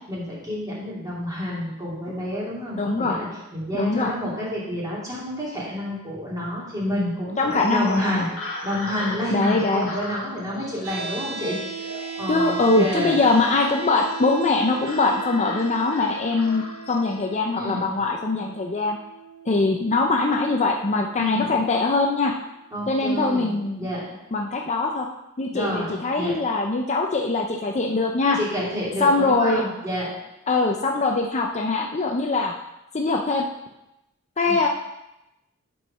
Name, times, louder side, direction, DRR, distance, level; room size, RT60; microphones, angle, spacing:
voice 1, 0.1-11.9 12.2-13.2 17.5-17.9 21.2-21.6 22.7-24.2 25.5-26.4 28.3-30.1 34.4-34.6, equal, 15° right, -7 dB, 2.7 m, -29 dB
voice 2, 2.8-3.2 3.7-4.1 7.4-8.2 9.3-9.9 12.3-19.0 19.5-22.3 22.9-23.9 24.3-25.1 25.4-28.4 29.0-29.6 30.5-32.5 32.9-33.4 34.4-34.7, left 3 dB, 30° left, 2 dB, 0.6 m, -22 dB
sound 1, 7.5-17.1, left 2 dB, 70° left, 1.6 m, -37 dB
sound 2, 10.8-22.9, right 4 dB, 90° right, 1.7 m, -38 dB
7.8 x 4.7 x 5.3 m, 0.90 s
head